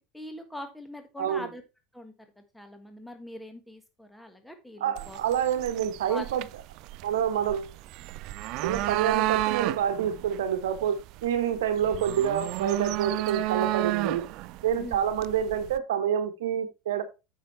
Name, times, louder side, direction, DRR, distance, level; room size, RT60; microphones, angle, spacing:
voice 1, 0.1-1.6 1.9-2.1 2.5-5.2 6.1-6.2 14.8-15.0, left 1 dB, 5° left, 1.6 m, -42 dB
voice 2, 1.2-1.5 4.8-6.4 7.0-7.7 8.6-14.2 14.6-17.0, right 9 dB, 80° right, 1.1 m, -27 dB
sound 1, 5.0-15.8, right 17 dB, 60° right, 0.4 m, -32 dB
8.4 x 5.8 x 4.3 m
hypercardioid pair, 85°, 0 cm